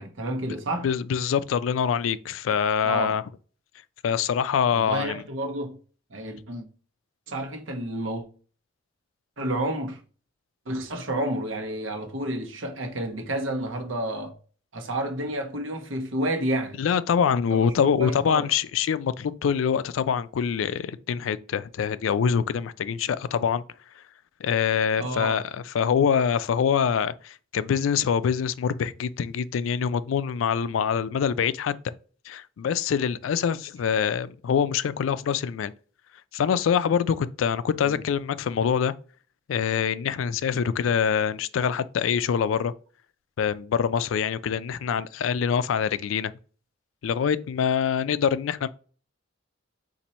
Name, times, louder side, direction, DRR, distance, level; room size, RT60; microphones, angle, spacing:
voice 1, 0.0-0.9 2.8-3.2 4.7-5.8 6.1-6.6 7.3-8.2 9.4-10.0 10.7-14.3 14.7-16.8 17.5-18.5 25.0-25.4 37.8-38.0, right 1 dB, 80° right, 1.0 m, -30 dB
voice 2, 0.8-3.2 4.0-5.2 16.8-23.6 24.4-31.9 32.3-35.7 36.3-38.9 39.5-42.7 43.4-46.3 47.0-48.7, left 7 dB, 85° left, 0.3 m, -25 dB
4.3 x 2.6 x 4.1 m
head